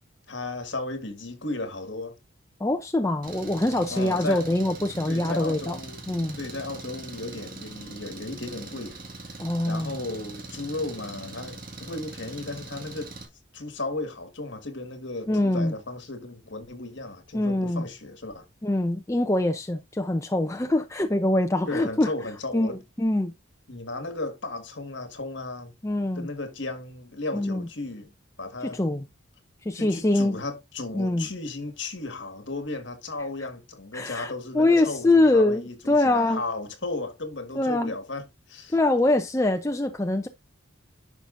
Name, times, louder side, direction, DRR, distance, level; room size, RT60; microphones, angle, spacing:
voice 1, 0.3-2.2 3.9-4.5 5.0-6.0 6.4-9.0 9.3-13.2 13.5-18.5 21.7-22.8 23.7-25.7 26.1-28.1 28.4-28.8 29.7-38.7, left 2 dB, 60° left, 1.7 m, -35 dB
voice 2, 2.6-5.8 6.1-6.4 9.4-10.0 15.3-15.7 17.3-17.8 18.6-22.1 22.5-23.3 25.8-26.3 27.3-27.7 28.6-29.0 29.6-30.4 30.9-31.3 33.9-36.4 37.6-37.9 38.7-40.3, left 2 dB, 15° left, 0.5 m, -24 dB
Engine, 3.2-13.3, right 2 dB, 45° right, 1.8 m, -41 dB
11.0 x 5.7 x 2.6 m
head